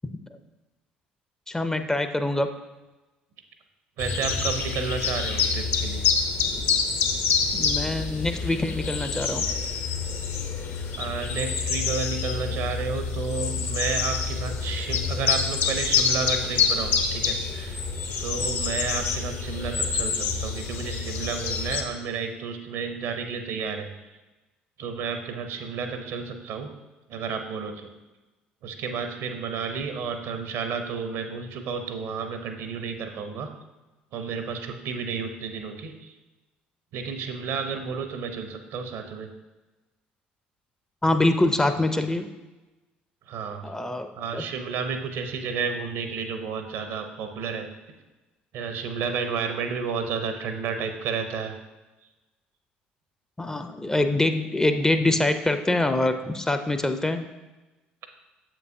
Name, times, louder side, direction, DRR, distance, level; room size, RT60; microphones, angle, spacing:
voice 1, 1.5-2.5 7.5-9.5 41.0-42.3 43.6-44.4 53.4-57.2, left 2 dB, 10° left, 8 dB, 0.5 m, -24 dB
sound 1, 4.0-21.8, left 5 dB, 55° left, 0.7 m, -27 dB
voice 2, 4.0-6.0 11.0-17.8 18.2-23.9 24.8-26.7 27.1-27.9 28.6-33.5 34.1-36.1 36.9-39.3 43.3-43.7 44.2-47.7 48.5-51.5, right 5 dB, 60° right, 7 dB, 0.7 m, -31 dB
7.3 x 5.9 x 2.6 m, 1.1 s
figure-of-eight pair, 55°, 5 cm